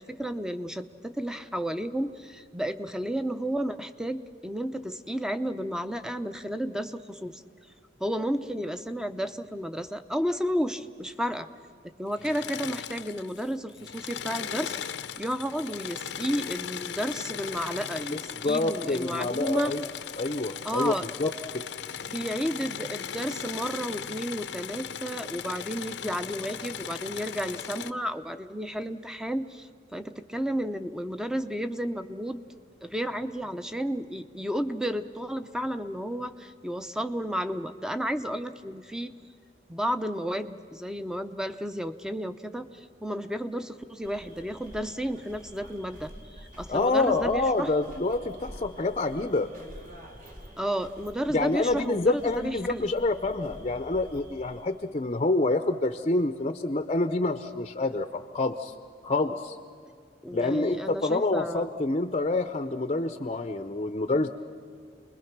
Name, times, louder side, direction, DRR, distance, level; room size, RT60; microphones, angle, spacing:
voice 1, 0.0-7.4 8.0-11.5 12.0-19.7 20.6-21.1 22.1-32.4 32.8-39.1 39.7-46.1 46.6-47.7 50.6-52.9 60.2-61.7, equal, 5° right, 10 dB, 0.7 m, -32 dB
Engine / Mechanisms, 12.1-13.5 13.8-27.9, left 8 dB, 75° left, 0.6 m, -38 dB
voice 2, 18.1-19.8 20.2-20.9 21.2-21.6 46.7-49.5 51.3-58.7 59.0-59.6 60.3-64.3, left 2 dB, 35° left, 9 dB, 0.6 m, -27 dB
sound 1, 44.0-54.6, equal, 50° right, 2.8 m, -48 dB
29.0 x 21.0 x 6.0 m, 2.2 s
head